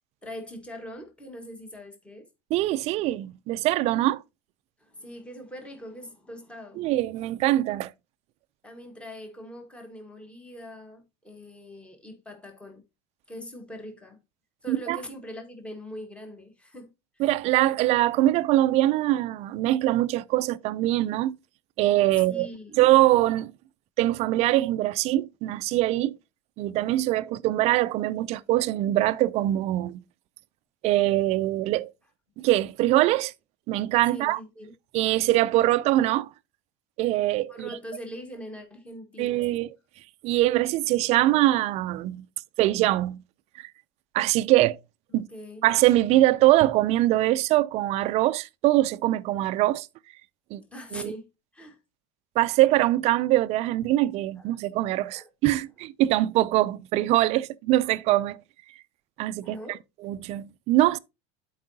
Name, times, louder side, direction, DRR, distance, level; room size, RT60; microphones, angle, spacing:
voice 1, 0.2-2.3 4.8-6.9 8.6-12.8 13.3-14.2 14.6-17.2 22.3-22.8 34.1-34.7 37.5-39.6 45.1-45.7 50.6-51.3 51.5-51.8 52.6-52.7 54.4-54.6 55.0-55.3 57.2-57.3 59.4-59.8, equal, 5° left, 1.5 m, -42 dB
voice 2, 2.5-4.2 6.8-7.9 14.7-15.0 17.2-21.4 21.8-22.5 22.8-23.5 24.0-26.2 26.6-30.0 30.8-31.9 32.4-33.3 33.7-34.4 34.9-36.3 37.0-37.7 39.2-39.7 40.2-42.2 42.6-43.2 44.1-44.8 45.1-45.3 45.6-49.9 50.5-50.6 50.9-51.1 52.4-58.4 59.2-59.6 60.0-61.0, right 15 dB, 45° right, 0.4 m, -23 dB
11.5 x 4.7 x 2.7 m
cardioid pair, 150°, 16 cm